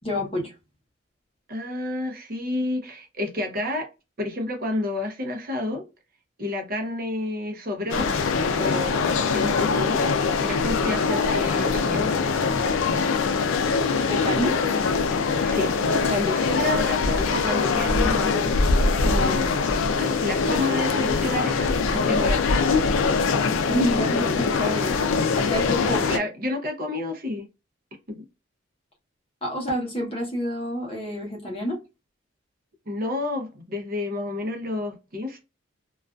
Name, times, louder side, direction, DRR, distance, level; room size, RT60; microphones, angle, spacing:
voice 1, 0.0-0.5 14.0-14.5 23.7-24.9 25.4-26.2 29.4-31.8, equal, 30° left, 0.8 m, -28 dB
voice 2, 1.5-3.9 4.2-5.8 6.4-8.1 8.6-10.1 10.4-12.1 15.4-15.7 16.1-18.5 18.8-19.6 19.9-22.7 25.8-27.5 28.1-28.2 32.9-35.4, left 2 dB, 45° right, 0.6 m, -30 dB
sound 1, 7.9-26.2, left 4 dB, 75° left, 0.4 m, -23 dB
2.4 x 2.3 x 2.2 m
head